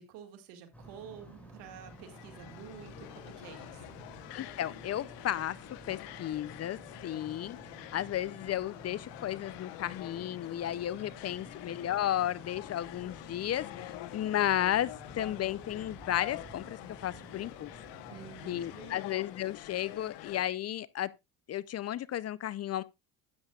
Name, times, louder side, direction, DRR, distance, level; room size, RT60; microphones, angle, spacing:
voice 1, 0.0-4.0 11.0-11.5 18.1-19.0, right 7 dB, 85° right, 1.9 m, -50 dB
sound 1, 0.7-18.9, right 1 dB, 5° left, 6.5 m, -52 dB
sound 2, 1.7-20.5, left 15 dB, 80° left, 1.0 m, -47 dB
voice 2, 4.3-5.6 5.9-7.6 7.9-17.7 18.5-21.1 21.5-22.8, left 12 dB, 40° left, 0.4 m, -33 dB
12.5 x 8.7 x 2.3 m
supercardioid pair, 95°, 41 cm